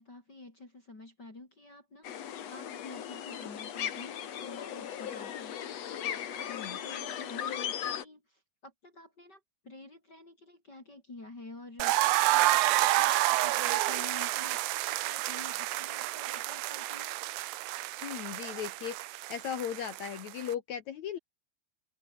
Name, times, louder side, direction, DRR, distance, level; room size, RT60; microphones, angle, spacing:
voice 1, 0.0-17.1, left 2 dB, 25° left, 4.7 m, -50 dB
sound 1, 2.0-8.0, left 9 dB, 55° left, 1.9 m, -37 dB
voice 2, 6.5-6.8 18.0-21.2, left 9 dB, 85° left, 1.6 m, -37 dB
sound 2, 11.8-20.5, right 17 dB, 90° right, 3.4 m, -29 dB
open air
omnidirectional pair, 5.2 m